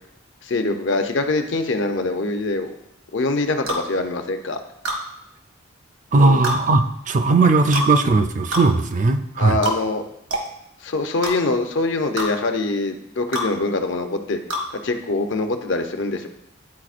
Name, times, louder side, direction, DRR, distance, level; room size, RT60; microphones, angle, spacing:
voice 1, 0.4-2.7 3.1-4.6 6.1-6.4 9.4-10.0 10.8-14.4 14.8-16.3, left 2 dB, 65° left, 6 dB, 0.6 m, -24 dB
sound 1, 3.7-3.8 4.8-5.0 6.4-6.6 7.7-7.9 8.5-8.7 9.6-9.8 10.3-10.5 11.2-11.3 12.2-12.3 13.3-13.5 14.5-14.7, equal, 80° right, 1.2 m, -25 dB
voice 2, 6.1-9.6, right 3 dB, 40° right, 9 dB, 0.4 m, -17 dB
10.5 x 4.2 x 2.5 m, 0.78 s
head